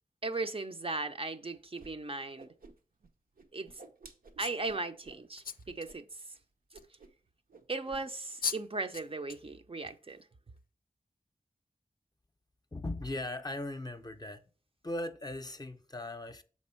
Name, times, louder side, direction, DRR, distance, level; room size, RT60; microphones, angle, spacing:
voice 1, 0.2-2.5 3.5-3.7 4.4-6.0 7.7-10.2, right 3 dB, 40° right, 0.5 m, -37 dB
Whoosh swoosh swish, 1.8-1.9 2.2-3.1 3.4-5.2 5.6-6.0 6.2-6.4 6.7-7.2 7.5-8.0, right 3 dB, 85° right, 0.8 m, -54 dB
sound 1, 4.4-4.7 5.4-5.9 6.8-6.9 8.1-8.2 8.4-8.6 8.9-9.4 9.9-10.1, left 6 dB, 90° left, 0.4 m, -37 dB
voice 2, 12.7-14.4 14.8-16.4, left 1 dB, 25° left, 0.6 m, -38 dB
6.7 x 4.3 x 4.4 m
wide cardioid pair, 70°, 15 cm